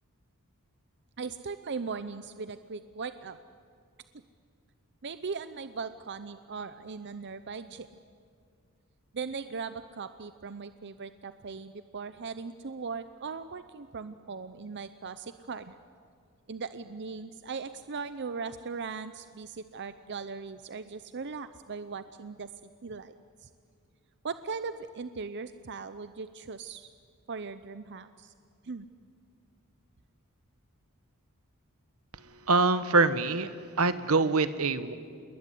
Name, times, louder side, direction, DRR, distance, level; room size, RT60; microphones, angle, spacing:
voice 1, 1.2-3.4 5.0-7.9 9.1-15.8 16.5-22.5 22.8-23.1 23.4-23.5 24.2-26.9 27.3-28.3 28.6-28.9, right 5 dB, 55° right, 12 dB, 0.7 m, -39 dB
voice 2, 32.5-33.5 33.8-34.9, right 3 dB, 70° right, 12 dB, 1.2 m, -24 dB
27.5 x 21.0 x 10.0 m, 2.2 s
head